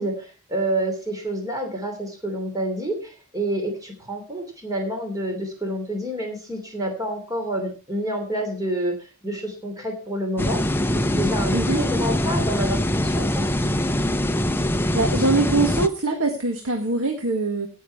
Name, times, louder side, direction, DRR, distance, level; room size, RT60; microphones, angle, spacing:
voice 1, 0.0-10.6 10.9-13.5, right 1 dB, 15° right, 3 dB, 2.9 m, -28 dB
sound 1, 10.4-15.9, left 1 dB, 10° left, 0.6 m, -23 dB
voice 2, 11.5-11.8 14.9-17.7, right 3 dB, 75° right, 5 dB, 1.6 m, -23 dB
16.5 x 6.5 x 4.6 m, 0.37 s
head